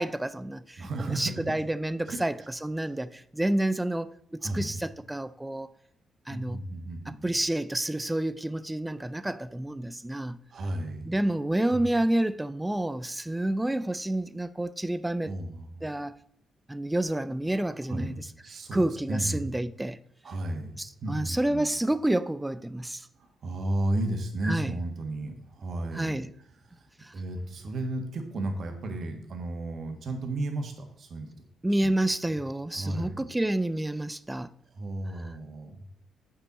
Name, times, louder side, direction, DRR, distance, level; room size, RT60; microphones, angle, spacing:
voice 1, 0.0-5.7 6.3-6.6 7.1-10.4 11.1-15.3 15.8-16.1 16.7-18.3 18.7-20.0 20.8-23.1 24.4-24.7 25.9-26.3 27.0-27.1 31.6-34.5, right 1 dB, 10° right, 0.3 m, -29 dB
voice 2, 0.8-1.3 2.0-2.2 2.8-2.9 4.4-4.8 6.3-7.3 10.5-11.1 11.7-11.8 15.3-15.8 17.7-19.5 20.2-20.7 21.0-21.7 23.2-26.2 26.7-26.9 27.1-31.3 31.8-31.9 32.7-33.2 34.7-35.8, right 1 dB, 50° right, 1.5 m, -33 dB
8.2 x 5.6 x 4.1 m
cardioid pair, 130°, 0 cm